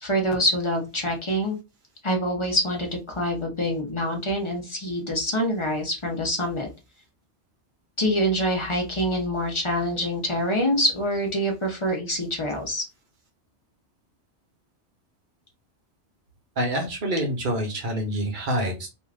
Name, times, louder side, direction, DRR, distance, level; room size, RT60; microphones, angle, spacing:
voice 1, 0.0-1.6 2.0-6.7 8.0-12.8, equal, 35° left, 1 dB, 0.5 m, -25 dB
voice 2, 16.6-18.9, right 1 dB, 50° right, 2 dB, 0.9 m, -26 dB
2.4 x 2.3 x 3.2 m, 0.28 s
omnidirectional pair, 1.2 m